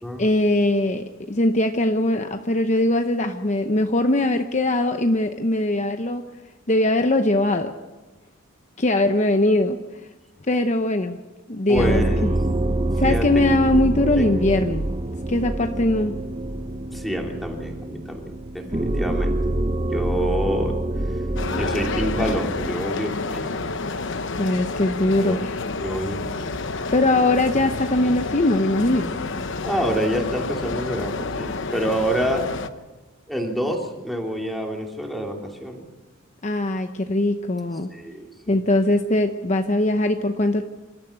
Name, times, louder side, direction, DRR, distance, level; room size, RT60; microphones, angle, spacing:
voice 1, 0.2-6.2 6.7-7.7 8.8-9.8 10.5-11.2 11.5-12.3 13.0-14.9 15.3-16.2 24.4-25.5 26.9-29.1 36.4-37.9 38.5-40.6, left 1 dB, 35° left, 6 dB, 0.9 m, -21 dB
voice 2, 11.7-12.3 13.0-13.4 14.2-14.3 16.9-19.4 19.9-20.8 21.6-23.8 25.2-25.4 25.8-26.5 29.6-32.5 33.3-35.8 37.9-38.3, equal, ahead, 1 dB, 3.0 m, -27 dB
sound 1, 11.7-22.7, right 1 dB, 25° right, 0.9 m, -26 dB
sound 2, 21.4-32.7, left 3 dB, 60° left, 1.0 m, -29 dB
28.0 x 13.5 x 8.3 m, 1.2 s
head